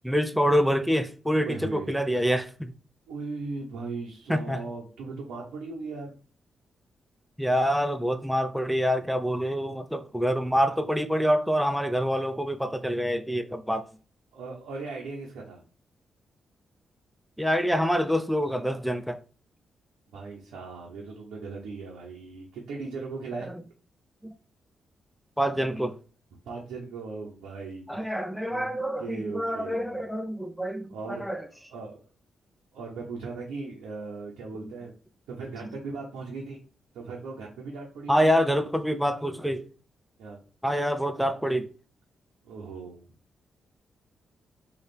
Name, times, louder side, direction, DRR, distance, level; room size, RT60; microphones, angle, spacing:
voice 1, 0.0-2.7 4.3-4.6 7.4-13.9 17.4-19.2 23.5-23.6 24.2-24.3 25.4-26.0 27.9-31.5 38.1-39.7 40.6-41.7, equal, ahead, 0.5 m, -26 dB
voice 2, 1.4-2.0 3.1-6.2 14.3-15.6 20.1-23.6 26.4-28.1 28.5-28.7 29.0-29.9 30.9-31.3 31.7-32.1 32.7-34.9 35.3-36.6 36.9-38.4 40.2-40.4 42.4-43.1, right 4 dB, 80° right, 0.8 m, -38 dB
3.2 x 2.5 x 4.2 m
hypercardioid pair, 45°, 0 cm